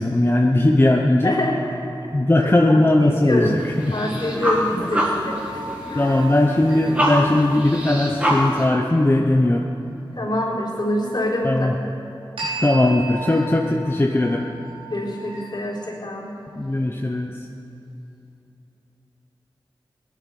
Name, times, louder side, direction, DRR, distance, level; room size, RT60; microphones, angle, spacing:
voice 1, 0.0-1.3 2.1-3.9 4.3-4.4 4.8-4.9 5.9-9.7 11.4-11.7 12.6-14.5 16.6-17.4, left 1 dB, 25° left, 1 dB, 0.9 m, -19 dB
voice 2, 1.2-1.7 2.0-2.1 2.4-3.6 3.9-6.2 10.1-11.7 14.9-16.3, left 1 dB, 55° left, -5 dB, 4.0 m, -26 dB
sound 1, 3.1-8.7, equal, 15° right, 2.5 m, -26 dB
sound 2, 5.3-8.1 12.4-15.9, right 2 dB, 85° right, 4.0 m, -35 dB
18.0 x 11.5 x 5.5 m, 2.8 s
wide cardioid pair, 55°, 9 cm